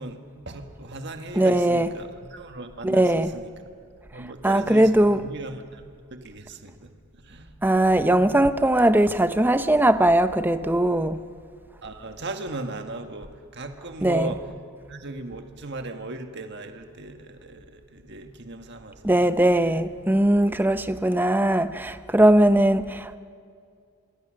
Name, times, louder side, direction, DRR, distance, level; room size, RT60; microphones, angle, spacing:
voice 1, 0.0-3.5 4.1-5.8 6.1-7.5 11.8-14.4 14.9-19.3 19.6-19.8, right 2 dB, 50° right, 1.7 m, -37 dB
voice 2, 1.4-1.9 2.8-3.3 4.4-5.2 7.6-11.2 14.0-14.3 19.0-23.2, right 1 dB, 10° right, 0.6 m, -20 dB
26.0 x 23.5 x 6.5 m
head